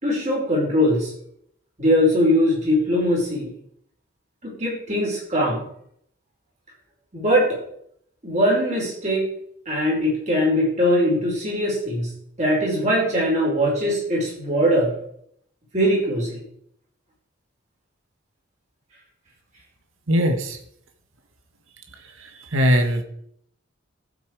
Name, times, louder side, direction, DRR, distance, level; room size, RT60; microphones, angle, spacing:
voice 1, 0.0-1.1 1.8-3.5 4.4-5.6 7.1-7.6 8.2-9.2 9.7-12.1 12.4-14.9 15.7-16.4, equal, 35° right, -4 dB, 5.3 m, -21 dB
voice 2, 20.1-20.6 22.2-23.0, equal, 70° right, 6 dB, 1.6 m, -20 dB
14.0 x 8.0 x 4.9 m, 0.70 s
head